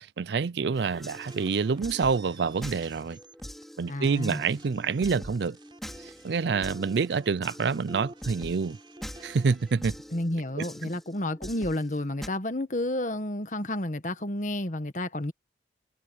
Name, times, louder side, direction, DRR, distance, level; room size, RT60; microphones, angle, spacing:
voice 1, 0.0-3.2 3.8-5.6 6.2-8.8 9.2-10.0, right 5 dB, 70° right, 0.4 m, -27 dB
sound 1, 0.7-12.3, equal, ahead, 3.2 m, -45 dB
sound 2, 1.3-3.6 4.0-9.7, right 2 dB, 30° right, 4.1 m, -50 dB
voice 2, 3.9-4.4 10.1-15.3, left 1 dB, 45° left, 1.6 m, -31 dB
head